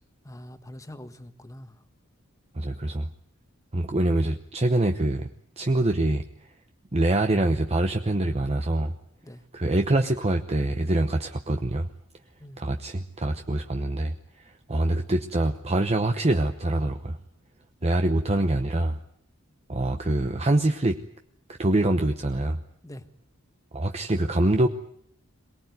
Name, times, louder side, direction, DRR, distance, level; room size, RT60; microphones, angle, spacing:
voice 1, 0.2-1.8 9.2-9.4 12.4-12.6 22.8-23.0, left 1 dB, 15° left, 9 dB, 1.5 m, -43 dB
voice 2, 2.6-3.1 3.7-5.3 5.6-6.2 6.9-8.9 9.5-11.9 12.6-14.1 14.7-17.2 17.8-19.0 19.7-21.0 21.6-22.6 23.7-24.7, right 1 dB, 30° right, 5 dB, 1.0 m, -24 dB
23.0 x 19.5 x 9.4 m, 0.69 s
head